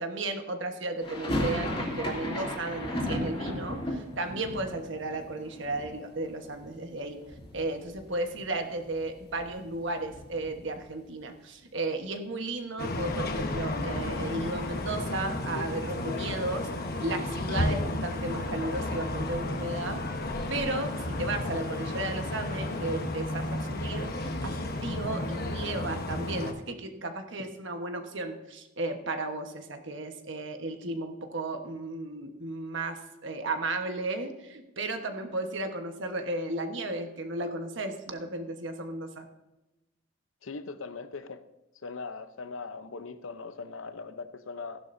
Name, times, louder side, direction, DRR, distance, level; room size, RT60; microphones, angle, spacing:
voice 1, 0.0-7.2 7.5-16.7 17.0-20.0 20.5-39.3, right 2 dB, 60° right, 6 dB, 1.2 m, -34 dB
sound 1, 1.0-7.0 7.2-8.1 8.3-8.4 8.7-10.9, left 1 dB, 25° left, 2.6 m, -35 dB
sound 2, 12.8-26.5, left 1 dB, 50° left, 1.1 m, -32 dB
voice 2, 40.4-41.4 41.8-44.8, left 4 dB, 75° left, 10 dB, 0.8 m, -40 dB
15.5 x 11.0 x 2.7 m, 1.0 s
head